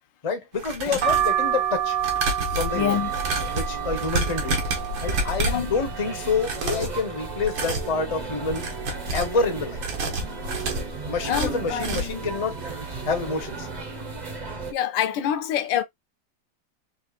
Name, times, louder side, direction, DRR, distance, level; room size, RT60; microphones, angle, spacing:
voice 1, 0.2-2.0 2.5-3.0 3.5-4.6 5.0-8.7 9.1-9.8 11.1-12.6 13.0-13.7, left 4 dB, 40° left, 0.5 m, -27 dB
sound 1, 0.5-1.4 2.0-5.7 6.3-7.0 7.4-7.9 8.4-9.4 9.8-12.2 12.6-12.7 13.1-13.2, right 2 dB, 75° right, 2.0 m, -29 dB
sound 2, 1.0-6.7 7.1-7.9 8.3-8.4 8.6-9.7 10.2-10.6 11.3-11.7 12.4-12.7 12.9-13.1, right 10 dB, 55° right, 1.0 m, -29 dB
voice 2, 2.7-3.1 5.5-5.7 11.3-11.9 14.7-15.8, left 10 dB, 75° left, 1.3 m, -26 dB
sound 3, 2.7-14.7, right 3 dB, 40° right, 0.6 m, -35 dB
5.4 x 2.4 x 2.4 m
omnidirectional pair, 2.1 m